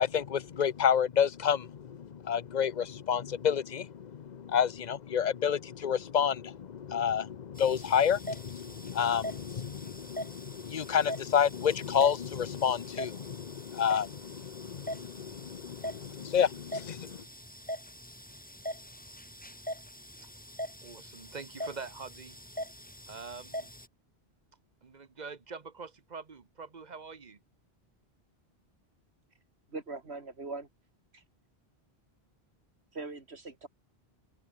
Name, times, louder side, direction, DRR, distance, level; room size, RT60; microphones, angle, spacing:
voice 1, 0.0-17.2, left 8 dB, 45° left, 0.8 m, -29 dB
sound 1, 7.6-23.9, equal, 10° left, 3.4 m, -43 dB
voice 2, 20.8-22.4 23.1-23.7 24.8-27.4, right 4 dB, 45° right, 1.2 m, -44 dB
voice 3, 29.7-30.7 31.1-31.2 32.9-33.7, right 3 dB, 90° right, 3.1 m, -41 dB
omnidirectional pair, 1.1 m